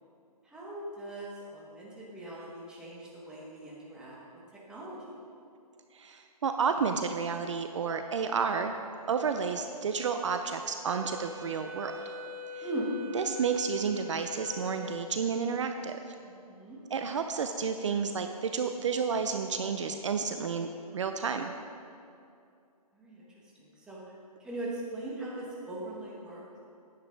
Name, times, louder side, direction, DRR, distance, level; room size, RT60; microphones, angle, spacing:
voice 1, 0.4-4.2 4.7-5.1 12.6-12.9 16.2-16.8 22.9-23.3 23.5-24.0 24.4-26.4, right 2 dB, 5° right, -6 dB, 1.1 m, -40 dB
voice 2, 5.9-8.7 9.1-11.9 12.5-12.7 13.1-16.0 16.9-20.7 20.9-21.5, right 6 dB, 50° right, 7 dB, 0.5 m, -31 dB
Wind instrument woodwind instrument, 10.9-15.4, left 3 dB, 35° right, 1.1 m, -43 dB
9.6 x 8.0 x 5.1 m, 2.5 s
hypercardioid pair, 165°, 20 cm